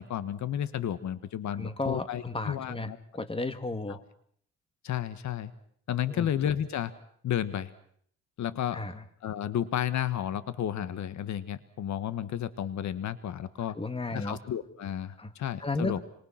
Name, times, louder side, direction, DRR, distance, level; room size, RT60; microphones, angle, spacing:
voice 1, 0.0-3.0 3.9-4.0 4.8-5.5 5.9-6.9 7.2-7.7 8.4-8.8 9.2-13.8 14.1-16.0, left 10 dB, 70° left, 14 dB, 1.6 m, -32 dB
voice 2, 1.5-4.0 6.1-6.3 8.7-9.0 13.7-14.4 15.2-15.3 15.6-16.0, left 2 dB, 20° left, 10 dB, 2.2 m, -34 dB
26.5 x 24.5 x 6.0 m, 0.65 s
cardioid pair, 90°, 30 cm